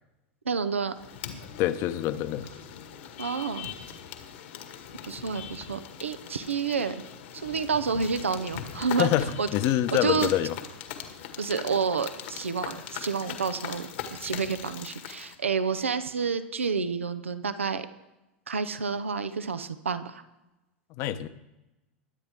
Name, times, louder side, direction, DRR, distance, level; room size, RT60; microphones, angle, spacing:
voice 1, 0.5-0.9 3.2-3.7 5.0-7.0 7.3-9.1 9.4-9.5 9.9-10.3 11.4-13.9 14.2-17.9 18.5-20.2, right 5 dB, 90° right, 11 dB, 0.8 m, -29 dB
sound 1, 0.9-15.4, left 9 dB, 70° left, 1.9 m, -41 dB
voice 2, 1.6-2.5 9.0-10.6 20.9-21.3, left 13 dB, 50° left, 12 dB, 1.0 m, -26 dB
22.0 x 9.4 x 3.6 m, 0.98 s
hypercardioid pair, 95°, 7 cm